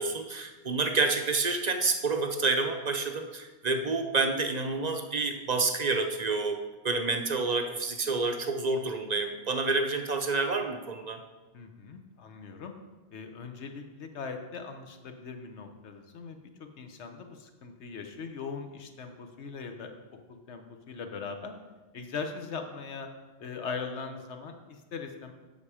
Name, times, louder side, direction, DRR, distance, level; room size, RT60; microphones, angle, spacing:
voice 1, 0.0-6.6 6.8-11.2, right 3 dB, 45° right, 5 dB, 0.7 m, -28 dB
voice 2, 11.5-12.7 13.1-19.9 20.5-21.5 21.9-23.1 23.4-25.3, left 5 dB, 75° left, 6 dB, 1.2 m, -40 dB
7.9 x 6.8 x 4.9 m, 1.2 s
omnidirectional pair, 1.2 m